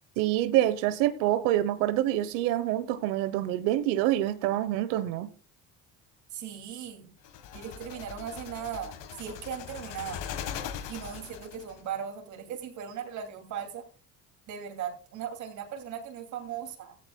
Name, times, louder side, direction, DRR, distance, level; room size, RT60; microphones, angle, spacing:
voice 1, 0.2-5.3, right 13 dB, 90° right, 1.1 m, -26 dB
voice 2, 6.3-7.1 7.5-10.2 10.9-13.8 14.5-17.0, right 8 dB, 65° right, 2.8 m, -38 dB
sound 1, 7.2-11.8, left 8 dB, 75° left, 1.6 m, -40 dB
15.0 x 14.5 x 2.3 m
cardioid pair, 95°, 32 cm